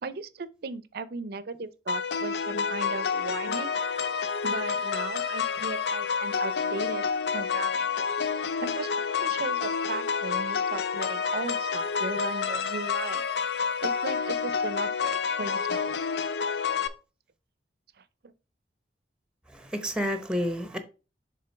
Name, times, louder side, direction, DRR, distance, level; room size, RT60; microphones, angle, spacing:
voice 1, 0.0-3.8 4.4-7.9 8.6-13.2 13.8-15.9 18.2-18.3, right 3 dB, 60° right, 0.5 m, -37 dB
sound 1, 1.9-16.9, left 6 dB, 65° left, 0.5 m, -29 dB
voice 2, 19.5-20.8, equal, 5° right, 0.8 m, -30 dB
6.8 x 3.6 x 4.5 m
head